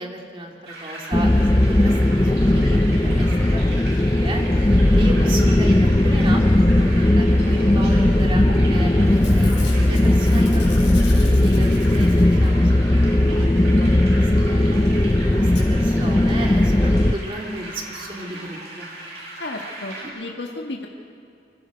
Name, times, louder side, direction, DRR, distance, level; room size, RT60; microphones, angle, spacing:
voice 1, 0.0-8.9 9.3-10.6 11.1-14.8 15.4-18.9, right 1 dB, 30° right, 0 dB, 2.8 m, -35 dB
sound 1, 0.6-20.0, right 1 dB, 65° right, 7.6 m, -37 dB
sound 2, 1.1-17.1, left 1 dB, 20° left, 0.5 m, -17 dB
Packing tape duct tape / Tearing, 8.5-8.8 9.1-12.7 14.6-14.7 14.8-14.9 15.5-15.6 16.3-16.4 16.6-16.7, left 7 dB, 90° left, 5.1 m, -41 dB
voice 2, 19.4-20.9, left 2 dB, 70° left, 0 dB, 1.7 m, -33 dB
28.5 x 24.5 x 5.3 m, 2.4 s
head